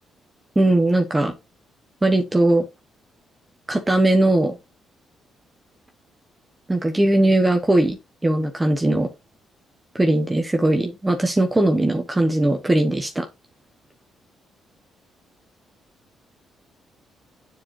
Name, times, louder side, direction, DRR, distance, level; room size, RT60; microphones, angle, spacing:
voice 1, 0.6-1.3 2.0-2.6 3.7-4.6 6.7-8.0 8.2-9.1 9.9-13.3, right 1 dB, 15° right, 1.1 m, -19 dB
9.6 x 4.5 x 2.8 m
cardioid pair, 90°, 0 cm